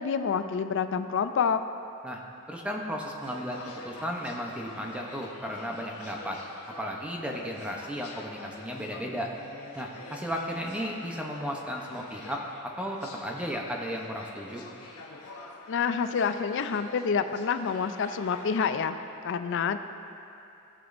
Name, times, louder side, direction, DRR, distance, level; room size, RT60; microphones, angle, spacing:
voice 1, 0.0-1.6 15.7-19.0 19.2-19.8, left 6 dB, 60° left, 10 dB, 0.4 m, -27 dB
voice 2, 2.5-6.4 6.8-9.3 9.7-12.4 12.8-14.6, equal, 5° right, 0 dB, 0.7 m, -34 dB
sound 1, 3.2-18.8, left 2 dB, 80° left, 1.0 m, -47 dB
17.5 x 6.1 x 2.6 m, 2.7 s
head